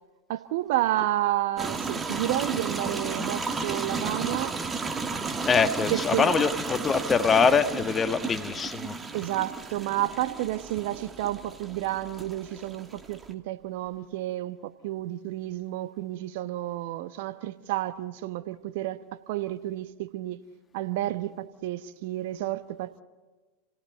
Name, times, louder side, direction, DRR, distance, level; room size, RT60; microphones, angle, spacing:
voice 1, 0.3-4.6 5.9-6.3 9.1-20.4 20.7-23.0, right 15 dB, 60° right, 1.0 m, -31 dB
sound 1, 1.6-13.3, right 4 dB, 20° right, 1.6 m, -33 dB
voice 2, 5.5-8.9, left 5 dB, 25° left, 1.4 m, -23 dB
30.0 x 17.5 x 8.1 m
figure-of-eight pair, 90°, 0 cm